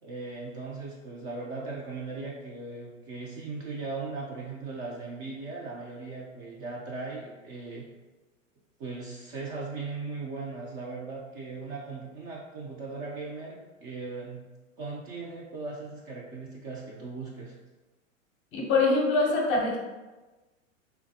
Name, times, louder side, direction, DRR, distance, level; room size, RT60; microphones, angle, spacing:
voice 1, 0.0-7.9 8.8-14.4 14.8-17.5, right 3 dB, 30° right, -3 dB, 0.4 m, -38 dB
voice 2, 18.5-19.8, left 3 dB, 30° left, -1 dB, 0.6 m, -24 dB
3.3 x 2.2 x 2.7 m, 1.2 s
hypercardioid pair, 115°, 40 cm